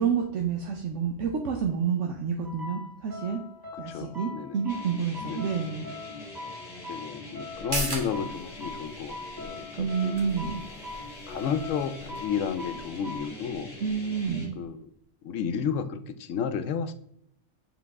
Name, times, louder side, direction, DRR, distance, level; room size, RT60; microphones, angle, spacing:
voice 1, 0.0-3.4 3.8-5.9 9.8-10.6 13.8-14.6, right 6 dB, 75° right, 2 dB, 1.0 m, -29 dB
sound 1, 2.4-13.3, left 2 dB, 20° right, 1.0 m, -42 dB
voice 2, 3.9-4.6 5.3-5.5 6.9-10.1 11.3-13.7 14.6-14.8 15.2-16.9, left 7 dB, 75° left, 10 dB, 0.9 m, -32 dB
sound 2, 4.7-14.5, left 2 dB, 30° left, 1.5 m, -44 dB
sound 3, 7.5-14.7 15.0-15.1, right 2 dB, 45° right, 1.3 m, -40 dB
6.8 x 3.9 x 3.5 m, 0.74 s
omnidirectional pair, 1.3 m